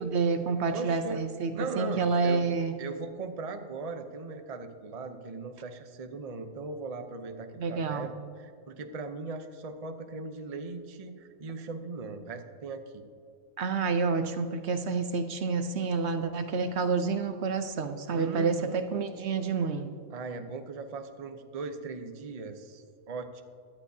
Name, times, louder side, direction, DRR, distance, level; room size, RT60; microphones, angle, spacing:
voice 1, 0.0-1.5 1.8-2.7 7.6-8.1 13.6-19.9, right 4 dB, 65° right, 8 dB, 0.9 m, -28 dB
voice 2, 0.7-1.2 1.5-2.4 2.8-8.1 8.4-13.0 18.1-18.8 20.1-23.4, right 3 dB, 35° right, 7 dB, 0.7 m, -39 dB
17.0 x 12.0 x 2.7 m, 2.3 s
omnidirectional pair, 1.3 m